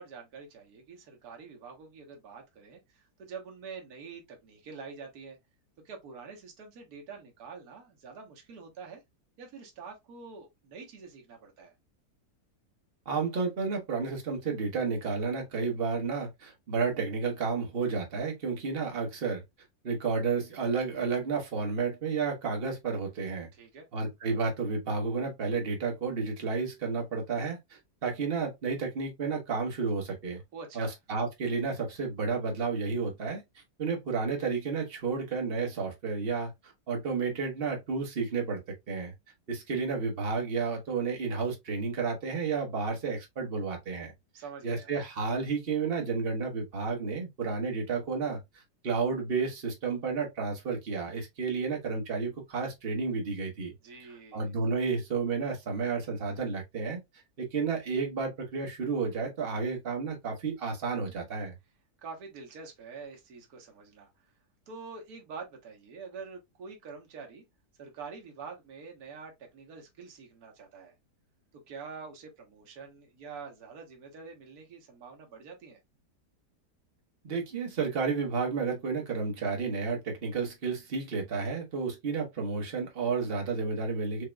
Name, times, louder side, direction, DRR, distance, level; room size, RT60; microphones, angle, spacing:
voice 1, 0.0-5.4 5.8-9.0 9.4-11.7 23.5-23.9 30.5-30.9 44.3-44.9 53.8-54.5 62.0-64.1 64.7-67.4 67.8-70.9 71.5-75.8, right 5 dB, 65° right, 1.6 m, -46 dB
voice 2, 13.0-19.4 19.8-23.5 23.9-30.4 30.7-33.4 33.8-39.1 39.5-44.1 44.6-53.7 54.3-57.0 57.4-61.5 77.2-84.2, right 4 dB, 35° right, 1.4 m, -31 dB
5.1 x 2.9 x 2.2 m
omnidirectional pair, 1.8 m